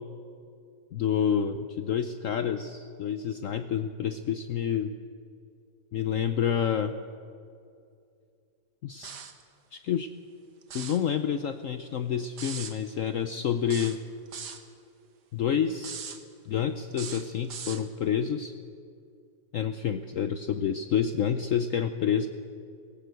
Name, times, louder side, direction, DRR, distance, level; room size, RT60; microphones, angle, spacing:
voice 1, 0.9-4.9 5.9-7.0 8.8-9.2 9.7-10.1 10.7-14.0 15.3-16.0 16.4-18.5 19.5-22.3, left 8 dB, 60° left, 9 dB, 1.0 m, -28 dB
sound 1, 9.0-9.4 10.6-11.0 12.4-12.8 13.7-14.6 15.8-16.2 16.9-17.8, right 7 dB, 85° right, 1.9 m, -39 dB
19.0 x 17.0 x 8.2 m, 2.5 s
omnidirectional pair, 1.7 m